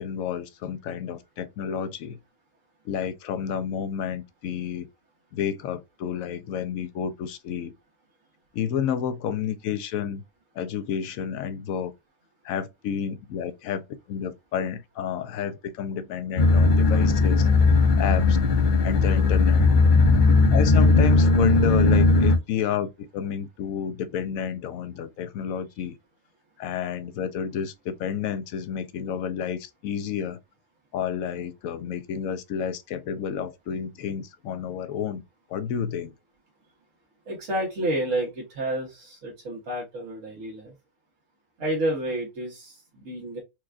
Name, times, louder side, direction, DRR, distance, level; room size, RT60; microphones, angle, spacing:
voice 1, 0.0-2.2 2.9-4.9 5.3-7.7 8.5-10.2 10.6-11.9 12.4-17.5 18.0-18.4 18.8-19.7 20.5-26.0 26.6-30.4 30.9-35.2 35.5-36.1, left 8 dB, 90° left, 1.0 m, -30 dB
sound 1, 16.4-22.4, left 3 dB, 50° left, 0.6 m, -18 dB
voice 2, 37.3-40.7 41.6-43.4, right 1 dB, 70° right, 1.5 m, -30 dB
4.5 x 2.3 x 2.4 m
omnidirectional pair, 1.4 m